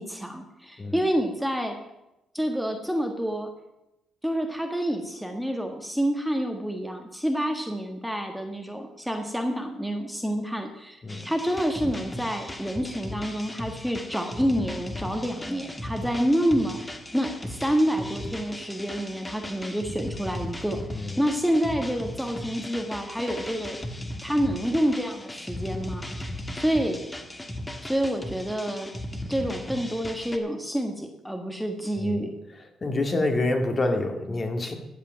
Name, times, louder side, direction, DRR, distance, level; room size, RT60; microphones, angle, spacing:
voice 1, 0.0-1.8 2.3-3.5 4.2-27.0 27.8-28.9 29.3-32.3, equal, ahead, 4 dB, 1.5 m, -28 dB
sound 1, 11.1-30.4, left 1 dB, 15° left, 1.5 m, -37 dB
voice 2, 32.8-34.7, left 2 dB, 30° left, 4 dB, 2.0 m, -27 dB
14.0 x 5.1 x 8.9 m, 0.91 s
cardioid pair, 90°, 0 cm